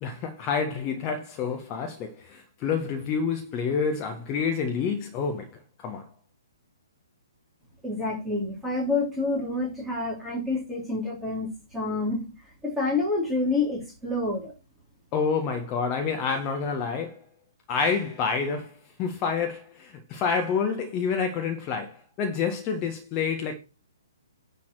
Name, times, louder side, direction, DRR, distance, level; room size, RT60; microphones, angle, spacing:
voice 1, 0.0-5.5 5.8-6.1 15.1-17.2 17.7-23.5, left 5 dB, 25° left, 1.6 m, -28 dB
voice 2, 7.8-12.2 12.6-14.5, left 3 dB, 5° right, 3.1 m, -28 dB
10.5 x 4.2 x 7.6 m
figure-of-eight pair, 125°, 2 cm